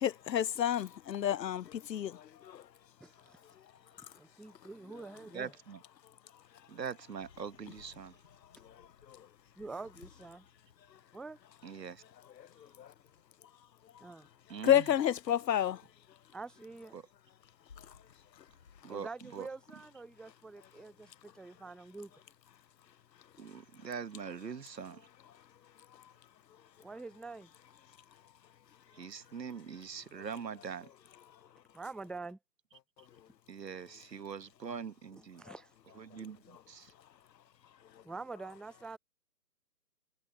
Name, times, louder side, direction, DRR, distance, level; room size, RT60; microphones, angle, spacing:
voice 1, 0.0-2.1 14.6-15.8, left 10 dB, 85° left, 0.7 m, -29 dB
voice 2, 3.0-3.4 4.0-5.5 9.6-10.5 11.1-11.4 14.0-14.3 16.3-17.0 18.9-22.1 26.8-27.5 31.7-32.4 35.4-35.7 38.0-39.0, right 3 dB, ahead, 0.3 m, -46 dB
voice 3, 5.3-5.8 6.7-8.2 11.6-12.0 14.5-14.9 16.9-17.1 18.8-19.5 23.4-25.1 28.9-30.9 33.5-35.5 35.9-36.9, right 6 dB, 85° right, 1.4 m, -43 dB
sound 1, 7.1-18.8, left 5 dB, 45° left, 7.7 m, -64 dB
hypercardioid pair, 175°, 49 cm